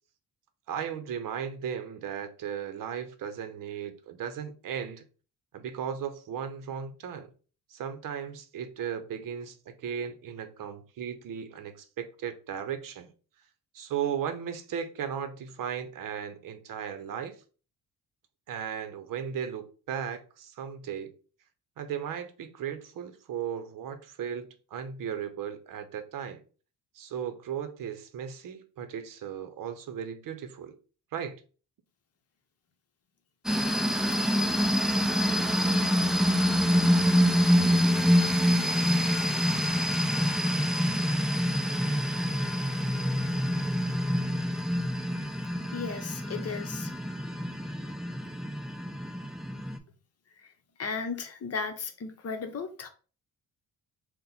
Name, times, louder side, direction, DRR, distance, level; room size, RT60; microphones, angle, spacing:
voice 1, 0.7-5.0 5.5-7.3 7.7-13.1 13.7-17.3 18.5-21.1 21.8-26.4 26.9-30.8 31.1-31.4, right 8 dB, 60° right, 0.7 m, -36 dB
sound 1, 33.5-49.8, equal, ahead, 0.4 m, -26 dB
voice 2, 45.7-46.9 50.8-52.9, left 5 dB, 40° left, 0.8 m, -35 dB
4.1 x 2.2 x 4.0 m
cardioid pair, 105°, 36 cm